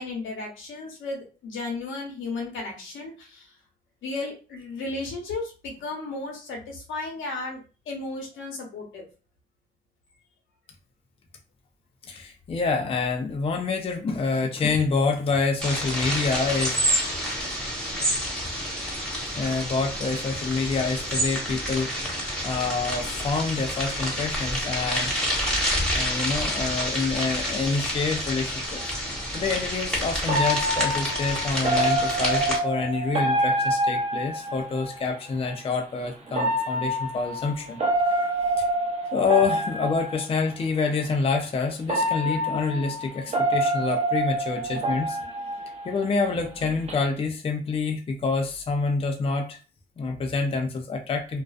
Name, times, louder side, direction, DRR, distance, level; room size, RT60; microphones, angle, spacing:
voice 1, 0.0-3.5 4.0-7.6 7.9-9.0, left 3 dB, 75° left, 1 dB, 0.9 m, -34 dB
voice 2, 12.1-17.0 18.8-18.9 19.4-21.9 22.4-25.1 25.9-28.9 29.3-37.8 38.1-38.3 38.6-38.7 39.1-45.2 45.8-49.6 50.0-51.4, left 4 dB, 30° left, 3 dB, 0.5 m, -27 dB
sound 1, 15.6-32.6, equal, 5° left, 1.1 m, -28 dB
sound 2, 28.8-28.9 30.3-35.0 36.3-40.5 41.3-41.4 41.9-46.3 46.6-46.9, right 1 dB, 35° right, 0.7 m, -26 dB
2.4 x 2.2 x 2.3 m, 0.34 s
cardioid pair, 90°, 20 cm